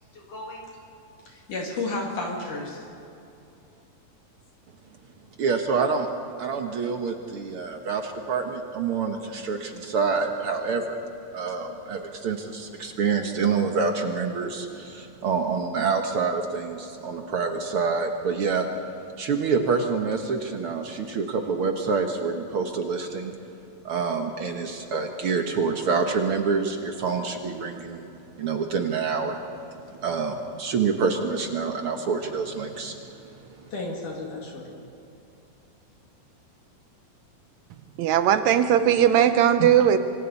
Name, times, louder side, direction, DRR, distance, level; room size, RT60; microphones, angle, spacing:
voice 1, 0.1-0.7 1.3-2.8 33.7-34.8, left 2 dB, 60° left, -2 dB, 3.7 m, -33 dB
voice 2, 5.4-6.1 6.4-11.0 11.3-18.7 19.2-23.3 23.8-28.1 28.4-29.4 29.8-33.1 33.4-33.5, right 5 dB, 65° right, 4 dB, 1.4 m, -27 dB
voice 3, 38.0-40.0, right 10 dB, 85° right, 10 dB, 1.6 m, -18 dB
26.0 x 25.5 x 4.2 m, 2.7 s
omnidirectional pair, 4.1 m